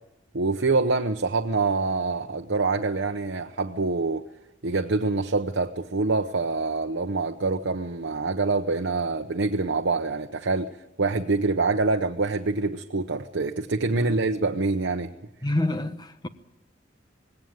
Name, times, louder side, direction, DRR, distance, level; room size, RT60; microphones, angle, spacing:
voice 1, 0.3-4.2 4.6-10.7 11.0-15.1, right 3 dB, 80° right, 0.9 m, -25 dB
voice 2, 15.4-16.3, left 1 dB, 25° left, 1.2 m, -27 dB
19.5 x 17.5 x 9.1 m
head